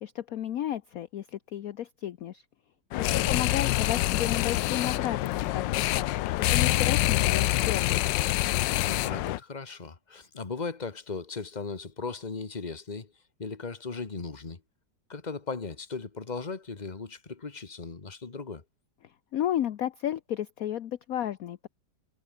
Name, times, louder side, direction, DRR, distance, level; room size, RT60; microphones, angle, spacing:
voice 1, 0.0-2.4 3.0-7.9 19.3-21.7, left 11 dB, 60° left, 1.1 m, -33 dB
sound 1, 2.9-9.4, left 16 dB, 85° left, 1.3 m, -26 dB
voice 2, 3.0-3.4 8.8-13.1 13.4-14.6 15.1-18.6, left 4 dB, 25° left, 1.7 m, -37 dB
omnidirectional pair, 2.0 m